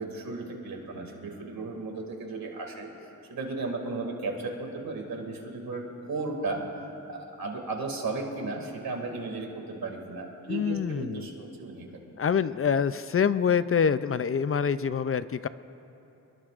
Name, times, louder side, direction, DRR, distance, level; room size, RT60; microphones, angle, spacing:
voice 1, 0.0-2.9 3.3-6.7 7.1-12.0, right 3 dB, 90° right, 2 dB, 2.3 m, -35 dB
voice 2, 10.5-11.3 12.2-15.5, left 7 dB, 40° left, 13 dB, 0.4 m, -26 dB
26.5 x 21.5 x 2.5 m, 2.9 s
wide cardioid pair, 115°, 35 cm